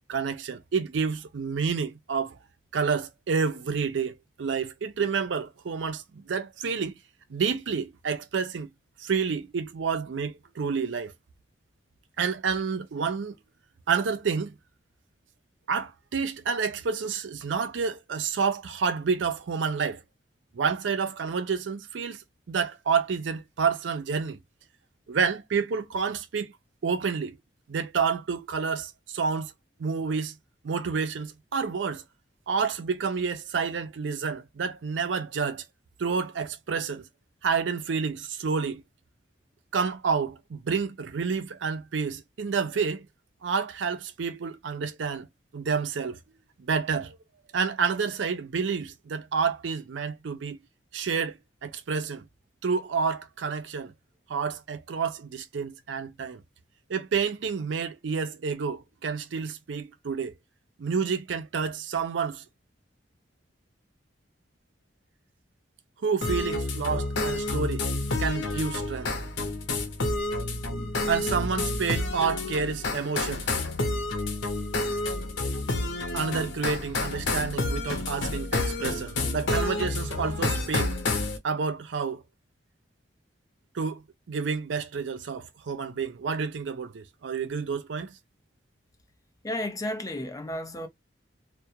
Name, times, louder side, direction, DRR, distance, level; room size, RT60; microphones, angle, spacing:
voice 1, 0.1-2.4 2.7-6.9 7.3-8.7 9.0-11.1 12.2-13.4 13.9-14.5 15.7-20.0 20.5-22.2 22.5-24.4 25.1-26.5 26.8-27.4 27.7-29.5 29.8-30.4 30.6-32.0 32.5-35.6 36.0-37.0 37.4-38.8 39.7-43.1 43.4-45.3 45.5-46.2 46.7-47.2 47.5-50.6 50.9-52.2 52.6-53.9 54.3-56.4 56.9-60.3 60.8-62.4 66.0-67.9 68.2-69.1 71.1-73.5 76.1-81.0 81.4-82.2 83.7-84.0 84.3-88.1, right 5 dB, 85° right, 0.5 m, -29 dB
sound 1, 66.2-81.4, left 2 dB, 90° left, 0.7 m, -29 dB
voice 2, 89.4-90.9, left 1 dB, 20° left, 0.5 m, -32 dB
2.4 x 2.1 x 2.7 m
head